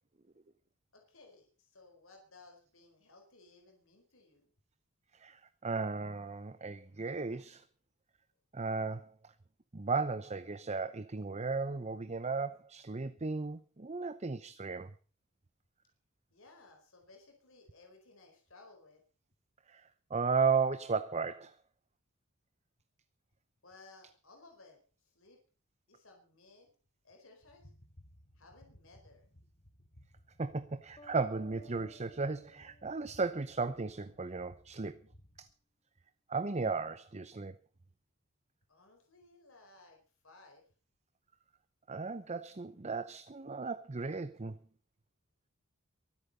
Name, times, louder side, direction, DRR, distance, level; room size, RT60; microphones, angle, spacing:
voice 1, 0.9-4.5 16.3-19.0 23.6-25.4 25.9-26.7 27.0-27.7 28.3-29.3 38.7-40.6, left 3 dB, 65° left, 4.7 m, -59 dB
voice 2, 5.2-7.6 8.5-9.1 9.7-14.9 19.7-21.5 30.4-35.0 35.4-35.5 36.3-37.5 41.9-44.6, right 4 dB, 30° right, 0.7 m, -35 dB
sound 1, 27.4-35.5, equal, 50° left, 3.4 m, -61 dB
sound 2, 31.0-33.8, right 3 dB, 25° left, 3.2 m, -58 dB
23.5 x 8.5 x 5.5 m
head